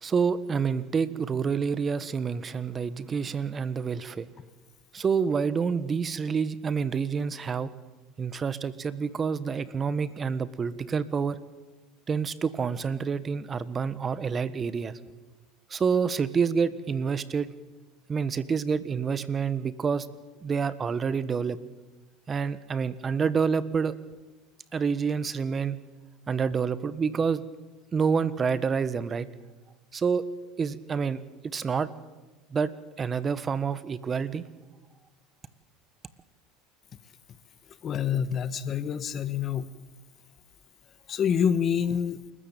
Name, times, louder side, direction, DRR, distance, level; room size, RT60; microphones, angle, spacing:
voice 1, 0.0-4.2 4.9-7.7 8.2-11.4 12.1-15.0 15.7-17.5 18.1-20.1 20.4-21.6 22.3-23.9 24.7-25.8 26.3-27.4 27.9-29.3 29.9-30.2 30.6-31.9 32.5-32.7 33.0-34.4, right 6 dB, 30° right, 15 dB, 1.4 m, -28 dB
voice 2, 37.8-39.7 41.1-42.2, left 8 dB, 40° left, 15 dB, 1.4 m, -27 dB
28.5 x 14.0 x 9.0 m, 1.2 s
hypercardioid pair, 95°, 0 cm